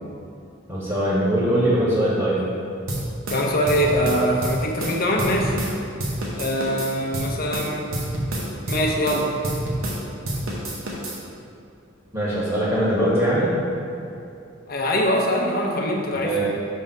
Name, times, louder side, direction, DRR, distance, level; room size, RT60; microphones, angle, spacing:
voice 1, 0.7-2.4 12.1-13.5 16.1-16.5, right 1 dB, 20° right, -8 dB, 1.3 m, -21 dB
sound 1, 2.9-5.7 6.0-10.0 10.2-11.2, right 1 dB, 80° right, 1.0 m, -28 dB
voice 2, 3.3-5.6 6.3-7.9 8.7-9.3 14.7-16.5, equal, 50° left, 0 dB, 0.8 m, -23 dB
6.3 x 3.5 x 5.4 m, 2.6 s
head